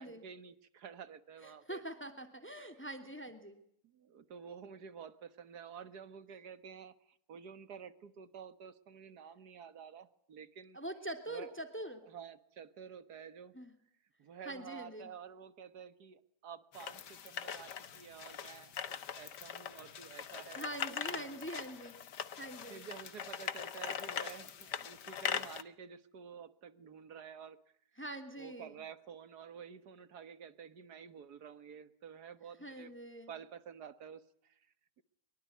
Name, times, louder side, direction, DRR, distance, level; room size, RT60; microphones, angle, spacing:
voice 1, 0.0-1.8 2.6-2.8 3.8-10.8 11.3-11.6 12.0-13.6 14.2-20.7 21.1-21.4 22.7-27.6 28.4-32.9 33.3-34.7 35.0-35.1, right 7 dB, 55° right, 14 dB, 1.9 m, -50 dB
voice 2, 1.4-3.6 10.7-12.0 13.5-13.7 14.4-15.1 20.5-22.0 22.4-22.8 28.0-28.8 32.6-33.3, right 1 dB, 5° left, 8 dB, 2.8 m, -44 dB
sound 1, 16.7-25.6, left 8 dB, 60° left, 1.8 m, -41 dB
24.0 x 23.5 x 9.4 m, 0.71 s
omnidirectional pair, 2.1 m